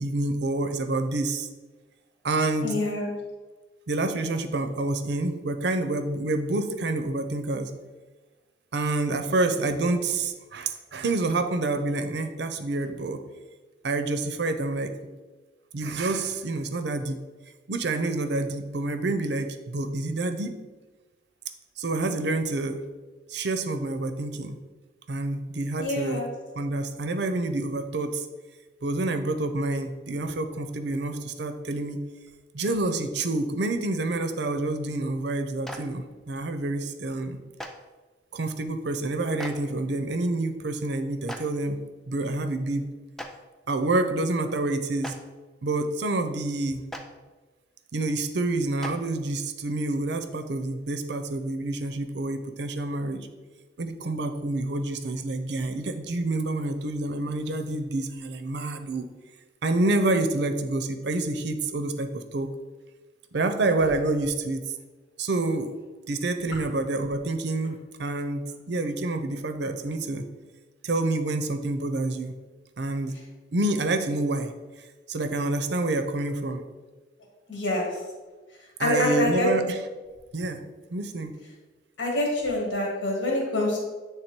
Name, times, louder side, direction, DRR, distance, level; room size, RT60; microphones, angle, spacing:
voice 1, 0.0-1.5 2.2-2.8 3.9-7.7 8.7-13.2 13.8-14.9 15.7-17.2 17.7-20.6 21.8-22.8 23.3-24.6 25.1-26.3 26.5-28.3 28.8-32.1 32.5-37.4 38.3-41.8 42.1-42.9 43.7-45.2 45.6-46.9 47.9-53.3 53.8-59.1 59.6-62.5 63.3-64.6 65.2-65.7 66.1-70.2 70.8-72.3 72.8-73.2 73.5-74.5 74.8-76.6 78.8-79.8 80.3-81.4, right 2 dB, 60° right, 9 dB, 0.5 m, -28 dB
voice 2, 2.6-3.1 25.8-26.3 77.5-77.9 78.8-79.5 82.0-83.8, left 1 dB, 90° left, -2 dB, 1.7 m, -26 dB
Clapping, 35.6-35.8 37.6-37.7 39.4-39.5 41.3-41.4 43.2-43.3 45.0-45.1 46.9-47.0 48.8-48.9, equal, ahead, 0.4 m, -36 dB
8.2 x 3.5 x 4.4 m, 1.3 s
head